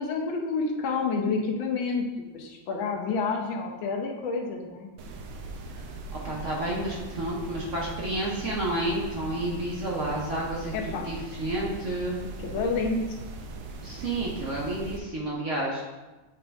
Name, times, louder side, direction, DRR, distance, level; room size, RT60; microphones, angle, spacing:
voice 1, 0.0-2.1 2.3-4.9 9.3-9.4 10.7-11.0 12.4-13.1, left 4 dB, 80° left, 1 dB, 1.6 m, -29 dB
sound 1, 5.0-15.0, right 3 dB, 70° right, 1.2 m, -40 dB
voice 2, 6.2-12.2 13.8-15.8, right 1 dB, 50° right, -4 dB, 1.0 m, -30 dB
7.7 x 3.8 x 3.4 m, 1.2 s
omnidirectional pair, 2.1 m